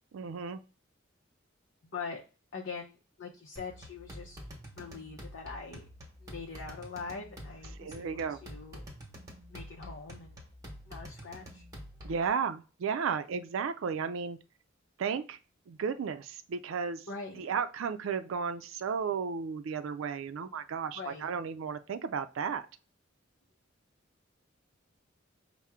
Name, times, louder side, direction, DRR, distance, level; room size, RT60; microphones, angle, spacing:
voice 1, 0.1-0.6 7.8-8.4 12.0-14.4 15.0-15.4 15.7-17.0 17.4-22.7, right 6 dB, 85° right, 10 dB, 0.4 m, -34 dB
voice 2, 2.5-4.4 4.8-5.9 6.2-8.9 9.5-10.4 10.9-11.6 17.1-17.5 20.9-21.3, left 4 dB, 70° left, -1 dB, 0.6 m, -43 dB
sound 1, 3.6-12.3, equal, 20° right, 1.0 m, -47 dB
5.6 x 2.0 x 3.5 m, 0.34 s
head